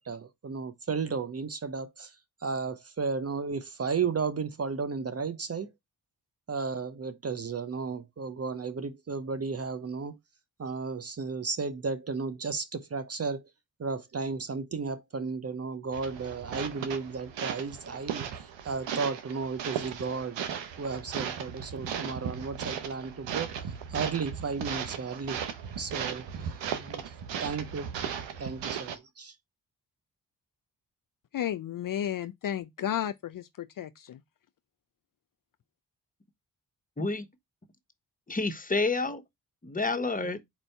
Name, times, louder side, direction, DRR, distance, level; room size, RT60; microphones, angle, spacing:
voice 1, 0.0-2.1 2.4-5.7 6.5-10.2 10.6-13.4 13.8-20.4 20.8-23.6 23.9-25.4 25.8-26.3 26.7-27.0 27.4-27.9 28.4-29.3, right 5 dB, 35° right, 0.7 m, -34 dB
sound 1, 15.9-28.9, right 8 dB, 85° right, 0.8 m, -37 dB
voice 2, 31.3-34.2, left 10 dB, 50° left, 0.5 m, -33 dB
voice 3, 38.3-39.2 39.6-40.4, left 3 dB, 20° left, 1.0 m, -29 dB
4.4 x 2.6 x 4.4 m
supercardioid pair, 45°, 43 cm